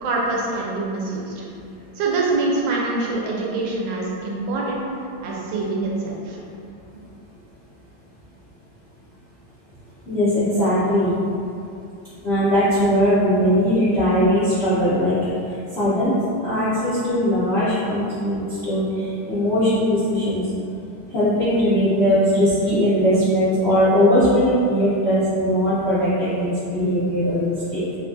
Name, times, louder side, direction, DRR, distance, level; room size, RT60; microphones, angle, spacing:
voice 1, 0.0-1.4 2.0-4.8 5.2-6.4, right 3 dB, 90° right, -3 dB, 1.4 m, -25 dB
voice 2, 10.1-11.1 12.2-15.1 15.8-16.1 16.4-20.4 21.1-27.8, equal, 90° left, -12 dB, 0.5 m, -19 dB
4.0 x 2.2 x 2.4 m, 2.6 s
omnidirectional pair, 2.1 m